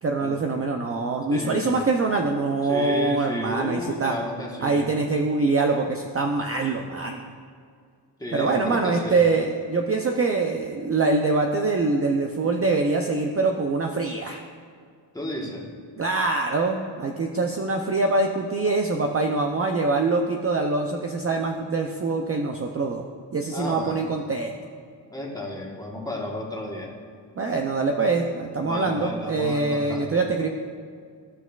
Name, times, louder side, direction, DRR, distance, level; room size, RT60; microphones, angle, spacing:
voice 1, 0.0-4.2 4.6-7.2 8.3-14.4 16.0-23.0 23.3-24.5 27.4-30.5, right 3 dB, 30° right, 2 dB, 0.5 m, -24 dB
voice 2, 1.3-1.8 2.6-4.9 8.2-9.2 15.1-15.7 23.5-24.0 25.1-26.9 28.6-30.2, left 1 dB, 10° left, -2 dB, 1.3 m, -33 dB
15.0 x 5.9 x 2.4 m, 2.2 s
wide cardioid pair, 125°, 45 cm